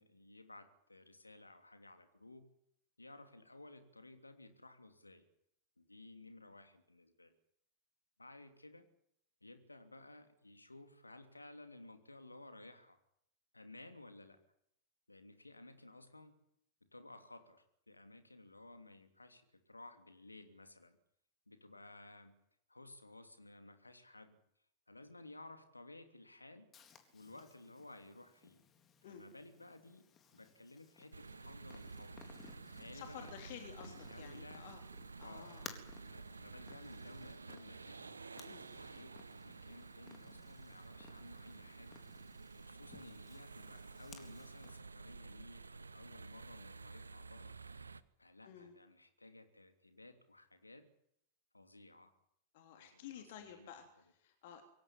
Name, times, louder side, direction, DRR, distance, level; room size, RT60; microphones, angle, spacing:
voice 1, 0.0-2.4 3.0-5.2 5.8-7.4 8.2-8.8 9.4-13.0 13.5-14.4 15.1-16.3 16.9-21.0 21.5-22.4 22.7-24.4 24.9-26.7 27.1-28.6 29.0-30.0 30.3-32.2 32.6-33.3 33.8-34.7 35.2-35.6 36.1-38.1 38.6-42.0 42.6-47.6 48.2-50.8 51.5-52.1 52.7-53.7, left 2 dB, 85° left, 8 dB, 2.9 m, -56 dB
Purr, 26.7-44.8, left 6 dB, 25° left, 3.8 m, -60 dB
sound 1, 31.1-48.0, right 4 dB, 75° right, 0.9 m, -52 dB
voice 2, 32.9-34.9 35.2-35.7 38.4-38.7 48.4-48.8 52.5-54.6, left 9 dB, 55° left, 6 dB, 3.2 m, -52 dB
23.5 x 17.0 x 9.9 m, 0.74 s
figure-of-eight pair, 90°, 0 cm